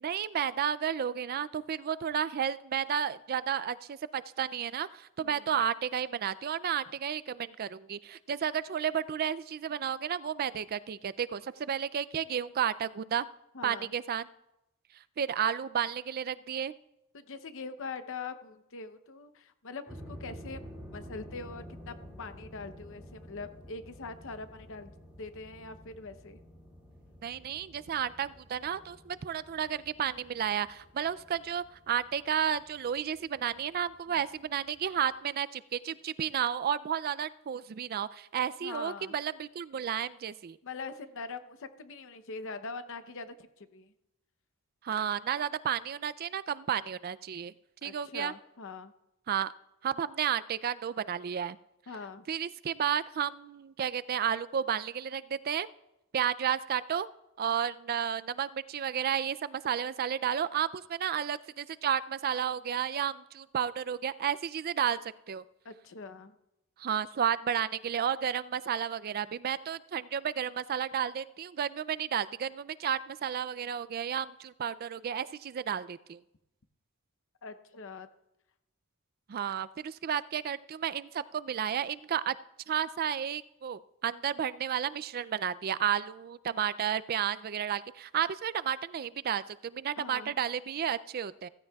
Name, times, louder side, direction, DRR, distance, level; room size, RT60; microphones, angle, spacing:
voice 1, 0.0-13.3 13.6-14.3 15.2-16.7 27.2-40.6 44.8-47.5 47.8-48.3 49.3-49.5 49.8-51.6 52.3-55.7 56.1-57.1 57.4-65.0 65.3-65.4 66.8-76.2 79.3-82.4 82.7-91.5, right 8 dB, 45° right, 16 dB, 0.3 m, -32 dB
voice 2, 5.2-5.6 13.5-13.9 17.1-24.9 25.2-26.4 34.1-34.2 38.6-39.1 40.6-43.9 44.9-45.1 47.8-48.9 51.9-52.3 65.6-66.3 77.4-78.1 90.0-90.3, left 4 dB, 60° left, 10 dB, 0.8 m, -43 dB
sound 1, 19.9-35.1, equal, 5° right, 2.1 m, -51 dB
16.0 x 15.0 x 2.3 m, 0.89 s
head